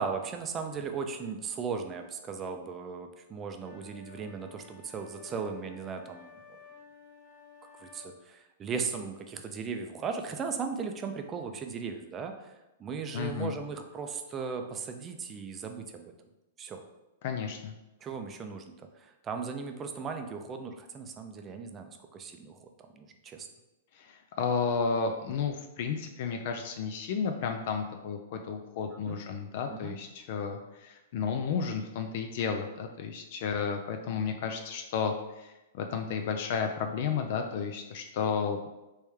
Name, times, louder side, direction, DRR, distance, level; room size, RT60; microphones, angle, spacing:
voice 1, 0.0-6.4 7.8-12.5 12.8-16.0 16.6-16.8 18.0-18.7 19.0-22.7 23.0-23.5 28.9-29.2 29.7-30.0, right 5 dB, 25° right, 5 dB, 0.4 m, -37 dB
sound 1, 3.6-8.1, left 4 dB, 35° left, 1.0 m, -54 dB
voice 2, 13.1-13.5 17.2-17.7 24.0-35.5 35.7-38.6, left 6 dB, 55° left, 4 dB, 0.4 m, -32 dB
3.2 x 3.0 x 3.4 m, 0.99 s
hypercardioid pair, 120°, 0 cm